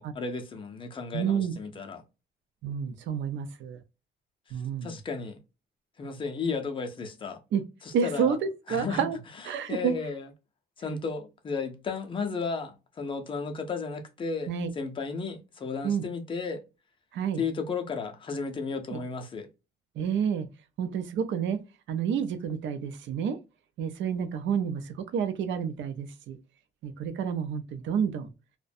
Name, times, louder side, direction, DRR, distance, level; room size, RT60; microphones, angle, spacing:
voice 1, 0.0-2.0 4.5-5.4 6.0-7.4 8.0-8.3 8.7-9.1 9.7-10.3 10.8-16.6 17.4-19.5, left 4 dB, 25° left, 0.5 m, -34 dB
voice 2, 1.1-1.5 2.6-3.8 4.5-5.0 7.5-7.6 7.9-9.2 9.4-9.9 14.5-14.7 15.8-16.0 17.1-17.4 18.9-19.0 20.0-20.5 20.8-21.6 21.9-23.4 23.8-26.4 26.8-28.3, right 7 dB, 70° right, 0.5 m, -29 dB
2.4 x 2.1 x 2.5 m
cardioid pair, 170°, 20 cm